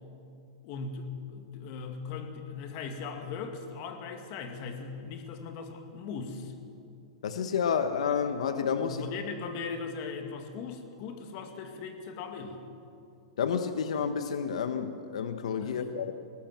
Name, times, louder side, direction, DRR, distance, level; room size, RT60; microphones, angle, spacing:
voice 1, 0.6-6.5 8.9-12.6 15.6-15.9, left 5 dB, 35° left, 5 dB, 2.2 m, -39 dB
voice 2, 7.2-9.0 13.4-16.1, left 7 dB, 80° left, 9 dB, 1.2 m, -30 dB
21.5 x 19.5 x 7.5 m, 2.5 s
supercardioid pair, 165°, 3 cm